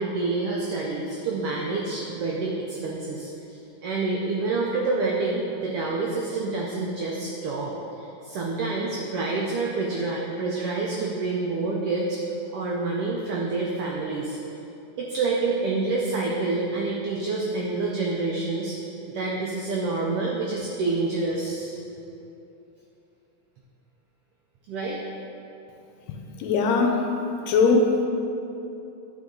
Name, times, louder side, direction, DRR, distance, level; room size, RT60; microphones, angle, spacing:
voice 1, 0.0-12.2 12.5-14.4 15.0-18.8 19.1-21.8 24.7-25.0, right 3 dB, 85° right, -2 dB, 1.3 m, -28 dB
voice 2, 26.1-27.0 27.5-27.9, left 4 dB, 80° left, 3 dB, 1.8 m, -21 dB
10.5 x 3.8 x 3.8 m, 2.9 s
omnidirectional pair, 3.3 m